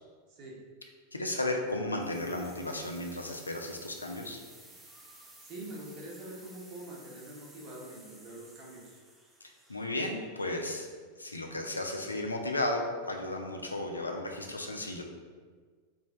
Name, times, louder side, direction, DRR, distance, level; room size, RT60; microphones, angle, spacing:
voice 1, 0.3-0.6 5.4-9.0, right 1 dB, 40° right, -3 dB, 0.9 m, -45 dB
voice 2, 1.1-4.4 9.7-10.9 11.2-15.0, left 1 dB, 80° left, 2 dB, 0.4 m, -34 dB
sound 1, 1.9-10.8, right 1 dB, 10° right, 0.6 m, -55 dB
3.2 x 2.5 x 3.4 m, 1.5 s
figure-of-eight pair, 90°, 0 cm